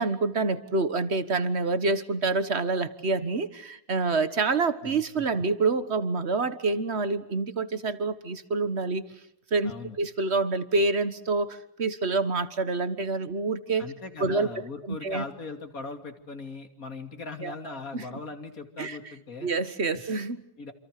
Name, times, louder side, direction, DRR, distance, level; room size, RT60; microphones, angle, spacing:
voice 1, 0.0-9.0 9.5-13.9 14.2-14.5 14.9-15.2 17.4-17.5 17.9-18.1 18.8-19.0 19.4-20.4, right 3 dB, 45° right, 12 dB, 1.7 m, -27 dB
voice 2, 4.8-5.2 9.6-10.0 13.8-19.5 20.6-20.7, left 3 dB, 60° left, 6 dB, 3.2 m, -39 dB
28.0 x 27.5 x 6.7 m, 0.77 s
omnidirectional pair, 1.7 m